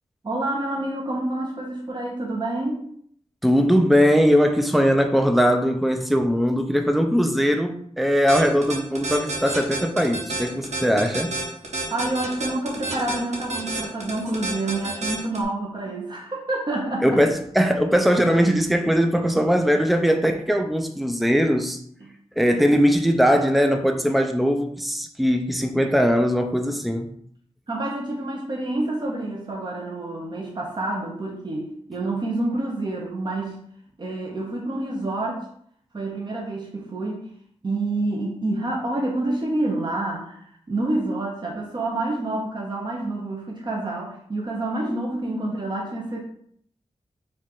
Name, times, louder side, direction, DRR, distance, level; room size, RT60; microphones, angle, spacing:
voice 1, 0.2-2.9 11.9-17.2 22.1-22.2 27.7-33.6 34.0-35.5 35.9-37.2 37.6-46.2, right 2 dB, 40° right, 1.0 m, -28 dB
voice 2, 3.4-11.3 17.0-21.8 22.4-27.1, equal, ahead, 0.5 m, -20 dB
sound 1, 8.3-15.4, right 2 dB, 85° right, 1.1 m, -29 dB
4.4 x 2.5 x 4.5 m
wide cardioid pair, 70°, 12 cm